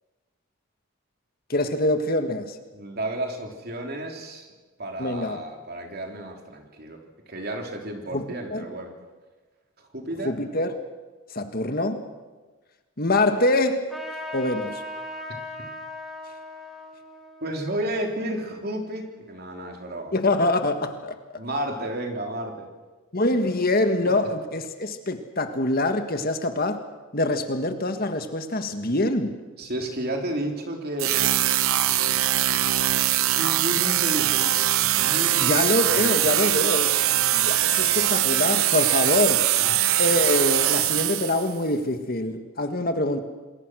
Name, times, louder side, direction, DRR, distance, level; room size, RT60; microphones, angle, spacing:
voice 1, 1.5-2.6 5.0-5.4 8.1-8.2 8.5-8.7 10.2-10.8 11.3-12.0 13.0-13.9 14.3-14.8 20.1-21.2 23.1-26.8 27.1-29.4 35.4-37.0 37.3-39.4 40.0-43.2, left 2 dB, 45° left, 7 dB, 1.7 m, -24 dB
voice 2, 2.7-4.5 4.8-7.0 7.3-8.9 9.9-10.4 17.4-20.1 21.4-22.7 29.6-31.1 33.2-34.6 35.0-35.7 35.9-36.1 39.6-39.7, right 1 dB, 45° right, 2 dB, 3.5 m, -32 dB
Trumpet, 13.9-18.9, left 1 dB, ahead, 3.3 m, -39 dB
sound 1, 31.0-41.5, right 13 dB, 75° right, 0.8 m, -22 dB
27.5 x 21.5 x 6.4 m, 1.3 s
head